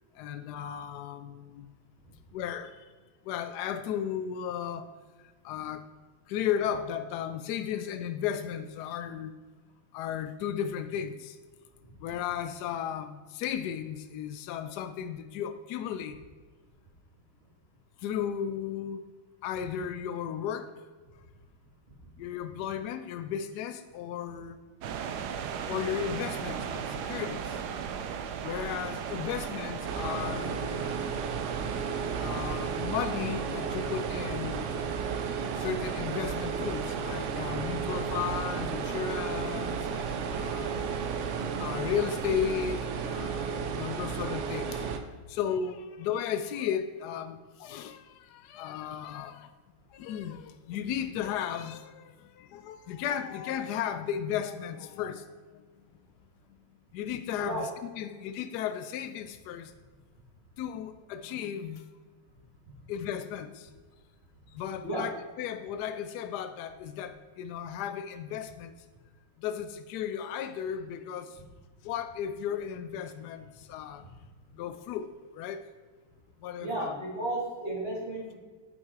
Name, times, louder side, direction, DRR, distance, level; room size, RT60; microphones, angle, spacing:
voice 1, 0.1-1.7 2.3-2.8 3.2-4.9 5.2-5.8 6.3-9.3 9.9-11.4 12.0-16.2 18.0-19.1 19.4-20.7 22.2-24.6 25.7-27.6 28.4-30.9 32.2-34.7 35.6-40.8 41.3-44.8 45.3-49.5 49.9-55.6 56.9-57.7 58.0-59.7 60.6-61.9 62.9-63.7 64.5-68.7 69.4-71.4 71.8-74.1 74.5-75.7 76.4-76.9, left 9 dB, 80° left, 10 dB, 0.9 m, -35 dB
sound 1, 24.8-42.3, right 7 dB, 65° right, 1.1 m, -38 dB
sound 2, 29.8-45.0, right 6 dB, 85° right, 0.6 m, -34 dB
voice 2, 76.6-78.4, right 2 dB, 30° right, -4 dB, 2.5 m, -34 dB
8.6 x 8.0 x 4.6 m, 1.4 s
omnidirectional pair, 2.3 m